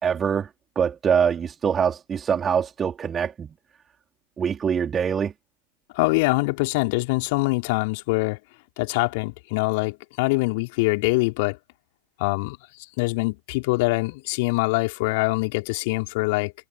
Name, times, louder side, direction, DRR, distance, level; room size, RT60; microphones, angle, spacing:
voice 1, 0.0-0.5 0.8-3.5 4.4-5.3, right 7 dB, 20° right, 4.0 m, -24 dB
voice 2, 5.9-8.4 8.8-11.6 12.2-12.6 13.0-16.5, left 26 dB, 50° left, 3.4 m, -24 dB
figure-of-eight pair, 90°, 0 cm